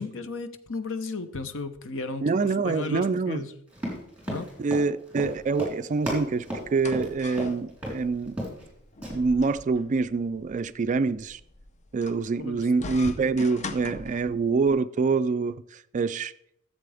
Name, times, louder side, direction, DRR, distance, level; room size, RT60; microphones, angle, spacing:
voice 1, 0.0-2.3 2.6-3.5 4.3-4.5 12.4-12.7 13.9-14.0, left 3 dB, 65° left, 0.8 m, -34 dB
voice 2, 2.2-3.4 4.6-8.4 9.1-11.4 11.9-16.3, right 4 dB, 35° right, 0.3 m, -26 dB
Run, 3.7-7.5 7.8-8.0 8.3-8.7 9.0-9.1, equal, 5° right, 3.8 m, -33 dB
sound 1, 6.3-14.7, left 3 dB, 35° left, 0.6 m, -43 dB
14.5 x 7.6 x 3.4 m
head